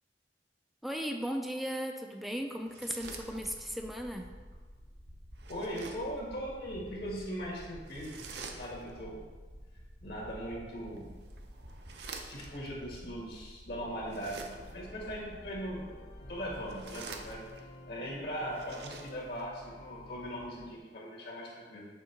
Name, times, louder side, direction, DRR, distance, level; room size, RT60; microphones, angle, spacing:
voice 1, 0.8-4.2, equal, ahead, 3 dB, 0.3 m, -36 dB
sound 1, 2.6-3.8 5.3-6.2 7.9-9.0 10.8-12.7 14.0-14.9 16.5-17.8 18.4-19.5, right 4 dB, 65° right, 0.6 m, -48 dB
sound 2, 3.0-17.5, equal, 85° right, 1.8 m, -51 dB
voice 2, 5.5-9.2 10.0-11.1 12.3-15.9 16.3-17.4 17.9-21.9, equal, 60° left, -4 dB, 1.7 m, -39 dB
sound 3, 13.8-20.8, left 1 dB, 85° left, 1.9 m, -52 dB
6.3 x 3.0 x 5.7 m, 1.4 s
head